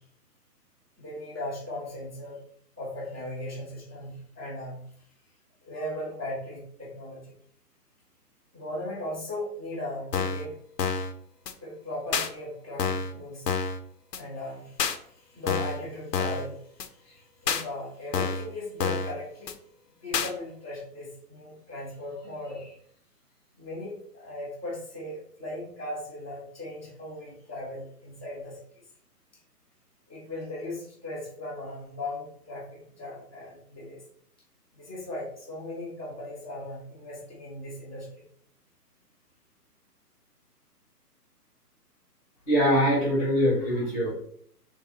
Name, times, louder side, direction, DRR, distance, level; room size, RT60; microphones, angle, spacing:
voice 1, 1.0-2.4 2.8-4.8 5.6-7.3 8.5-10.5 11.6-13.4 14.2-14.8 15.1-16.6 17.0-19.5 20.0-22.8 23.6-28.6 30.1-34.0 34.7-38.1, left 1 dB, 10° right, -15 dB, 0.5 m, -38 dB
sound 1, 10.1-10.5 10.8-11.1 11.5-11.6 12.1-12.3 12.8-13.1 13.5-13.8 14.1-14.2 14.8-15.0 15.5-15.8 16.1-16.5 16.8-16.9 17.5-17.6 18.1-18.5 18.8-19.1 19.5-19.6 20.1-20.3, left 6 dB, 85° left, 0.7 m, -28 dB
voice 2, 42.5-44.1, equal, 10° left, -4 dB, 0.9 m, -23 dB
3.2 x 2.7 x 4.0 m, 0.63 s
hypercardioid pair, 145°, 48 cm